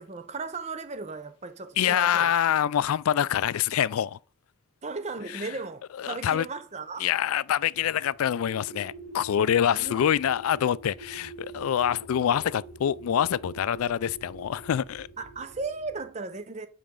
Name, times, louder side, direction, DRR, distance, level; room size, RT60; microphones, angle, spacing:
voice 1, 0.0-2.3 4.8-7.1 9.7-10.2 15.2-16.7, right 3 dB, 30° right, 0.6 m, -36 dB
voice 2, 1.8-4.2 6.0-6.5 7.0-15.1, left 9 dB, 85° left, 0.3 m, -25 dB
sound 1, 7.7-16.1, right 3 dB, 55° right, 3.2 m, -45 dB
8.6 x 5.1 x 3.7 m
head